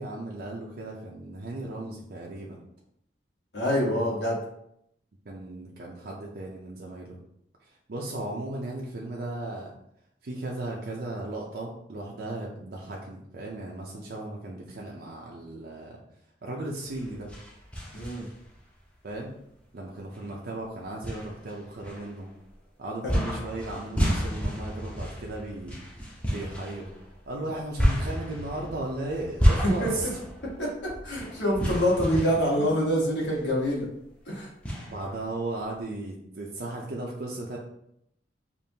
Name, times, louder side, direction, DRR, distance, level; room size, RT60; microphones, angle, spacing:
voice 1, 0.0-2.6 3.9-4.1 5.2-7.2 7.6-9.7 10.2-16.0 16.4-17.3 19.0-19.3 19.7-22.3 22.8-25.8 26.3-26.9 27.3-30.2 32.5-32.7 34.9-37.6, right 2 dB, 60° right, -2 dB, 0.6 m, -36 dB
voice 2, 3.5-4.4 17.9-18.2 29.8-29.9 30.6-30.7 31.0-33.9 34.3-34.5, equal, 75° left, -4 dB, 1.4 m, -25 dB
sound 1, 16.8-18.6 19.1-19.2 20.2-20.3 21.0-22.5 23.1-33.5 33.8-33.9 34.6-35.7, equal, 5° left, 0.8 m, -30 dB
5.2 x 2.5 x 2.8 m, 0.76 s
head